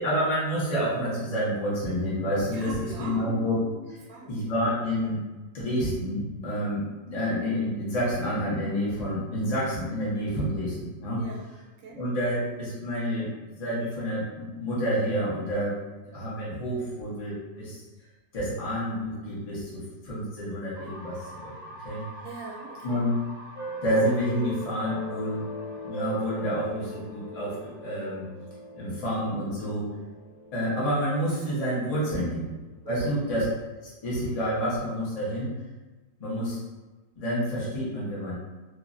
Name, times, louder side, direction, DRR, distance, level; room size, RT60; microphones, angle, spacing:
voice 1, 0.0-3.6 3.9-4.0 4.3-5.2 5.5-11.2 11.9-13.3 13.5-15.8 16.0-17.8 18.3-21.5 21.8-22.0 22.8-23.1 23.8-25.4 25.8-28.2 28.7-29.8 30.5-32.5 32.9-33.5 33.8-35.5 36.2-36.6 37.2-38.3, equal, 45° left, -7 dB, 0.5 m, -29 dB
voice 2, 2.5-3.3 3.8-4.3 11.2-11.5 11.8-12.0 22.2-23.1 31.9-32.3 32.8-33.1, right 3 dB, 90° right, -2 dB, 1.3 m, -42 dB
sound 1, 20.7-28.6, equal, 60° right, 0.8 m, -47 dB
sound 2, 23.5-32.8, equal, 25° left, 1.1 m, -40 dB
3.0 x 2.4 x 2.4 m, 1.2 s
omnidirectional pair, 2.0 m